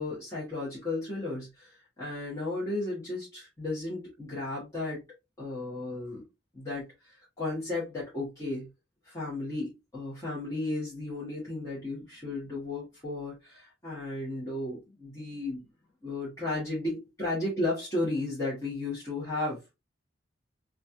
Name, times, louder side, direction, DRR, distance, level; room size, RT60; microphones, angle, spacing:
voice 1, 0.0-5.0 5.4-6.2 6.5-8.7 9.0-15.6 16.0-19.7, left 2 dB, 15° left, -8 dB, 1.1 m, -34 dB
3.0 x 2.3 x 2.5 m, 0.24 s
head